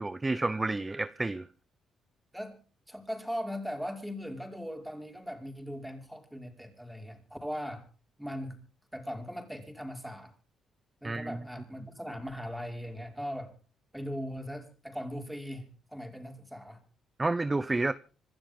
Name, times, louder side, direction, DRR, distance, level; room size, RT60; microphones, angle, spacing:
voice 1, 0.0-1.5 11.0-11.4 17.2-17.9, right 2 dB, 20° right, 0.8 m, -30 dB
voice 2, 2.9-7.8 8.2-8.6 8.9-10.3 11.0-13.5 13.9-16.8, equal, ahead, 5.4 m, -39 dB
26.5 x 12.5 x 3.8 m
cardioid pair, 90°, 0 cm